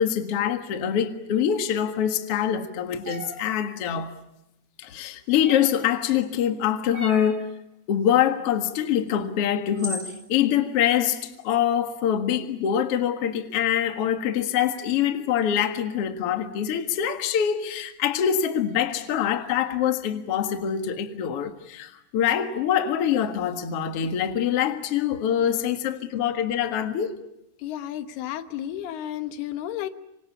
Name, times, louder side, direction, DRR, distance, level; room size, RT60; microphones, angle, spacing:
voice 1, 0.0-4.1 4.8-7.5 7.9-27.2, left 9 dB, 50° left, 2.1 m, -24 dB
sound 1, 3.0-3.4 5.4-5.9 6.9-7.4 9.1-9.2 9.8-10.2, right 1 dB, 25° right, 5.4 m, -35 dB
voice 2, 27.6-29.9, left 11 dB, 80° left, 3.2 m, -32 dB
27.0 x 25.0 x 8.4 m
omnidirectional pair, 4.5 m